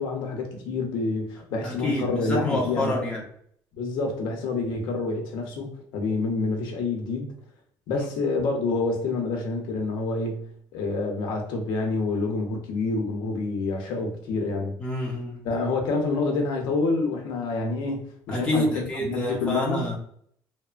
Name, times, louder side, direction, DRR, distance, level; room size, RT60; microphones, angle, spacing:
voice 1, 0.0-3.2 3.7-7.3 7.9-14.8 15.4-19.9, left 3 dB, 80° left, 2 dB, 0.6 m, -28 dB
voice 2, 1.6-3.2 7.9-8.1 14.8-15.5 18.3-20.0, left 1 dB, 10° left, -3 dB, 0.7 m, -28 dB
2.8 x 2.1 x 2.4 m, 0.64 s
cardioid pair, 170°, 8 cm